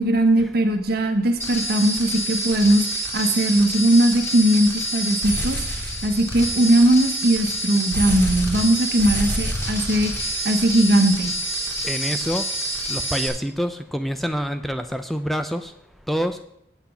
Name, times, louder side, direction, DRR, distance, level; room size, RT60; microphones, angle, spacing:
voice 1, 0.0-11.3, right 1 dB, 60° right, 7 dB, 1.1 m, -19 dB
sound 1, 1.4-13.3, right 1 dB, 15° left, 2.3 m, -27 dB
voice 2, 11.8-12.4 12.9-15.7 16.1-16.4, equal, ahead, 8 dB, 0.4 m, -26 dB
8.2 x 5.9 x 7.0 m, 0.74 s
head